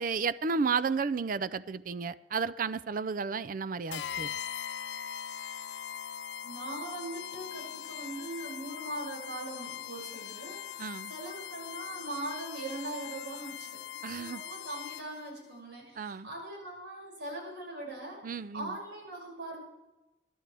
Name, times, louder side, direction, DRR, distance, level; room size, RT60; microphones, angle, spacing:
voice 1, 0.0-4.3 10.8-11.1 14.0-14.4 16.0-16.3 18.2-18.8, right 5 dB, 50° right, 17 dB, 0.4 m, -32 dB
sound 1, 3.9-15.3, left 10 dB, 75° left, 0.4 m, -41 dB
voice 2, 6.4-19.6, right 2 dB, 85° right, -2 dB, 6.3 m, -41 dB
24.0 x 12.0 x 3.4 m, 1.0 s
head